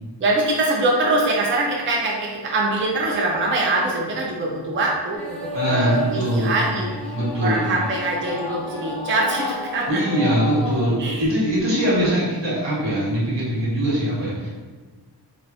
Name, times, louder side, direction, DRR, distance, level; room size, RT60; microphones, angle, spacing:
voice 1, 0.2-6.9 7.4-10.0 11.0-11.3 11.9-12.2, right 2 dB, 30° right, -2 dB, 0.4 m, -23 dB
sound 1, 5.1-11.0, left 3 dB, 5° left, 0.7 m, -31 dB
voice 2, 5.5-6.7 7.1-7.8 9.9-14.5, right 1 dB, 80° right, -8 dB, 1.4 m, -22 dB
2.9 x 2.6 x 3.0 m, 1.4 s
wide cardioid pair, 170°, 43 cm